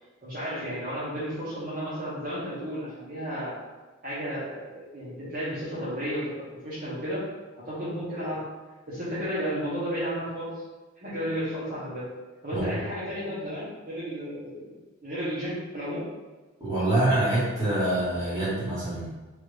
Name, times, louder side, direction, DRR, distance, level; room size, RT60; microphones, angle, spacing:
voice 1, 0.2-3.6 4.0-7.3 7.6-8.5 8.9-10.6 11.0-12.1 12.4-14.8 15.0-16.1, equal, 45° right, -10 dB, 0.8 m, -33 dB
voice 2, 16.6-19.1, right 1 dB, 20° right, -10 dB, 1.4 m, -25 dB
3.2 x 2.5 x 3.1 m, 1.2 s
head